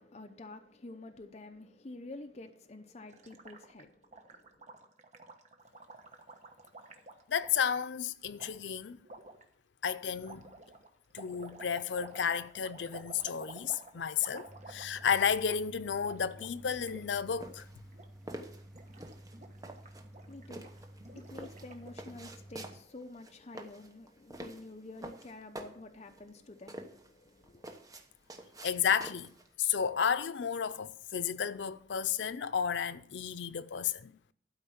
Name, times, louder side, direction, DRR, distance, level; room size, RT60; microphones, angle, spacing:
voice 1, 0.0-4.9 19.9-27.8, left 2 dB, 40° left, 0.7 m, -49 dB
Gurgling, 3.1-7.7 8.4-8.5 9.0-9.4 10.2-15.1 15.4-15.6 15.9-17.0 17.3-17.5 17.9-18.4 18.7-22.1, right 2 dB, 40° right, 1.1 m, -52 dB
voice 2, 7.3-9.0 9.8-10.5 11.1-17.7 28.6-29.3 29.6-34.1, left 7 dB, 90° left, 0.5 m, -32 dB
sound 1, 14.5-22.8, right 1 dB, ahead, 0.6 m, -53 dB
sound 2, 16.8-29.5, right 1 dB, 20° right, 1.0 m, -48 dB
12.0 x 5.0 x 7.2 m
head